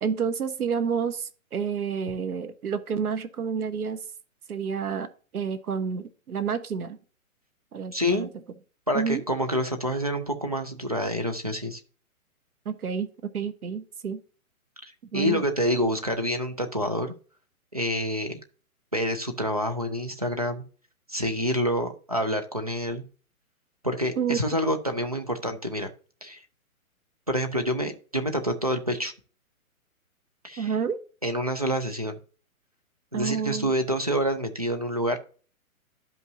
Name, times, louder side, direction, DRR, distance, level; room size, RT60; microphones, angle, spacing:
voice 1, 0.0-4.0 4.5-5.1 5.3-7.0 7.7-8.3 8.9-9.2 12.6-14.2 15.1-15.4 24.2-24.4 30.6-31.0 33.1-33.7, right 6 dB, 85° right, 11 dB, 1.2 m, -29 dB
voice 2, 7.9-8.3 8.9-11.8 14.8-17.1 17.7-18.4 18.9-20.6 21.1-23.0 23.8-25.9 26.2-26.4 27.3-29.1 30.4-30.7 31.2-32.2 33.1-35.2, equal, 30° right, 6 dB, 0.4 m, -27 dB
12.0 x 5.4 x 2.7 m, 0.38 s
hypercardioid pair, 175°, 43 cm